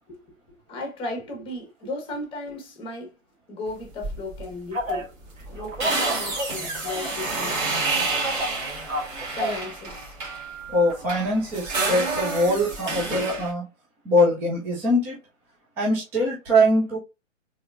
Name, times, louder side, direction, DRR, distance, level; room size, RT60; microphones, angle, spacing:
voice 1, 0.7-3.2 3.5-5.1 5.5-7.6 9.3-10.1, left 2 dB, 15° left, 1.3 m, -35 dB
sound 1, 4.0-4.5 4.8-4.9 5.2-10.5 10.9-13.5, right 3 dB, 35° right, 1.6 m, -29 dB
Telephone, 4.7-5.1 5.6-7.2 7.5-9.7 10.2-10.9, equal, 75° right, 1.8 m, -32 dB
voice 2, 10.7-13.7 14.0-15.2 15.8-17.0, equal, 5° right, 0.4 m, -22 dB
4.2 x 3.4 x 2.5 m
hypercardioid pair, 130°, 40 cm